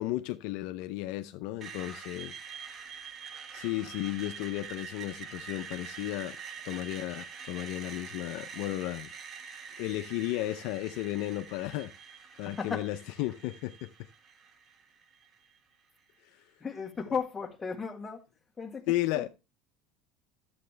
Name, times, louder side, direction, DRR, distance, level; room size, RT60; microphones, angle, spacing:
voice 1, 0.0-2.4 3.5-6.4 6.6-9.1 9.8-11.9 12.4-13.9 18.9-19.3, left 16 dB, 65° left, 0.6 m, -34 dB
Screech, 1.6-15.6, right 6 dB, 35° right, 1.5 m, -45 dB
voice 2, 16.6-18.2 18.6-19.3, left 6 dB, 15° left, 1.7 m, -35 dB
11.5 x 7.8 x 3.3 m
supercardioid pair, 125°, 0 cm